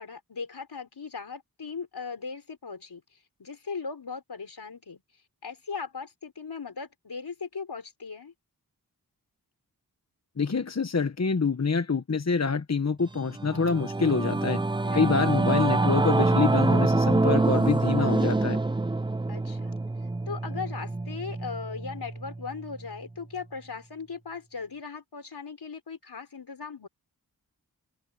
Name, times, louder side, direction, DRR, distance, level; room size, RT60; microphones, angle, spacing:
voice 1, 0.0-3.0 3.4-5.0 5.4-8.3 14.8-15.1 19.3-19.8 20.3-26.9, left 5 dB, 85° left, 4.7 m, -38 dB
voice 2, 10.4-14.6 14.9-18.6, left 5 dB, 45° left, 1.1 m, -26 dB
Singing / Musical instrument, 13.1-22.8, right 2 dB, 15° right, 0.5 m, -26 dB
open air
wide cardioid pair, 50°, 38 cm